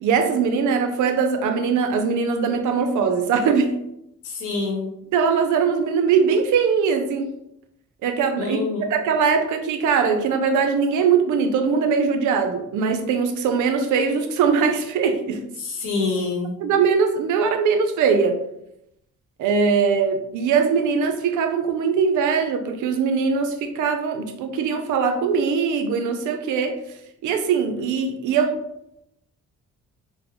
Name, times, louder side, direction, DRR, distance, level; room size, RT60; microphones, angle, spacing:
voice 1, 0.0-3.7 5.1-7.3 8.0-8.6 8.9-15.4 16.6-18.4 19.4-26.8 27.2-28.6, right 6 dB, 80° right, 7 dB, 0.6 m, -21 dB
voice 2, 4.2-4.9 8.4-8.9 15.6-16.6, left 3 dB, 85° left, 0 dB, 1.0 m, -26 dB
3.8 x 2.1 x 3.0 m, 0.81 s
cardioid pair, 90°, 30 cm